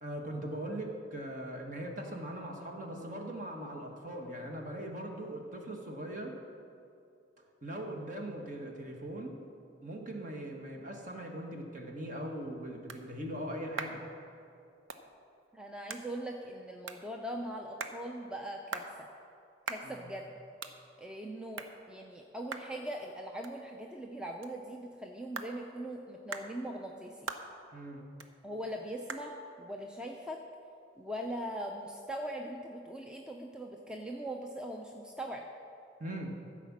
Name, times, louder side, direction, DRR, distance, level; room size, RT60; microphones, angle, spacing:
voice 1, 0.0-6.3 7.6-9.4 9.8-14.1 19.8-20.1 27.7-28.0 36.0-36.4, right 1 dB, 40° right, 2 dB, 1.3 m, -40 dB
sound 1, 12.0-31.3, right 4 dB, 75° right, 0.7 m, -47 dB
voice 2, 15.5-18.9 19.7-20.4 21.0-27.2 28.4-30.4 31.0-35.5, right 1 dB, 5° right, 1 dB, 0.5 m, -41 dB
14.5 x 5.0 x 7.3 m, 2.5 s
head